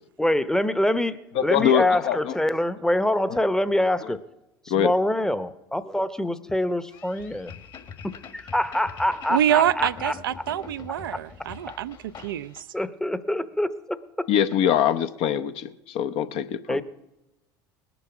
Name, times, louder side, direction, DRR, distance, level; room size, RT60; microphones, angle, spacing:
voice 1, 0.2-4.2 4.6-7.5 8.3-10.1 10.9-11.2 12.7-14.3 16.7-16.8, left 1 dB, 5° left, 13 dB, 0.8 m, -25 dB
voice 2, 1.4-2.3 3.3-3.4 4.7-4.9 14.3-16.8, left 9 dB, 60° left, 11 dB, 0.7 m, -23 dB
sound 1, 6.9-12.6, left 6 dB, 45° left, 1.6 m, -44 dB
voice 3, 9.3-12.7, right 11 dB, 85° right, 13 dB, 0.4 m, -25 dB
19.5 x 7.0 x 6.0 m, 0.95 s
hypercardioid pair, 80°, 11 cm